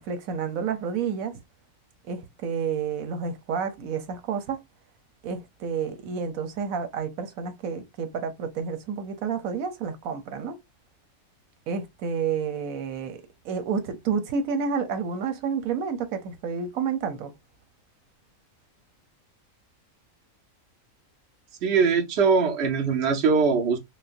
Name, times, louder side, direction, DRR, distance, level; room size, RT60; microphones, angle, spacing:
voice 1, 0.0-1.3 2.1-4.6 5.2-10.6 11.7-13.2 13.4-17.3, right 6 dB, 90° right, 1.2 m, -30 dB
voice 2, 21.6-23.8, right 5 dB, 55° right, 1.1 m, -21 dB
6.4 x 2.2 x 2.5 m
omnidirectional pair, 1.4 m